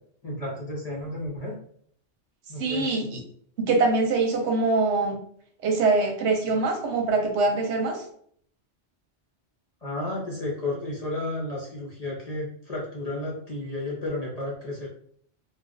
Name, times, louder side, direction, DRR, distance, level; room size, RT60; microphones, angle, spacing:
voice 1, 0.2-1.5 2.5-3.0 9.8-14.9, left 2 dB, 40° left, -4 dB, 0.7 m, -32 dB
voice 2, 2.6-3.2 3.6-5.2 5.6-8.0, right 3 dB, 75° right, 2 dB, 0.9 m, -23 dB
2.4 x 2.3 x 3.7 m, 0.62 s
omnidirectional pair, 1.2 m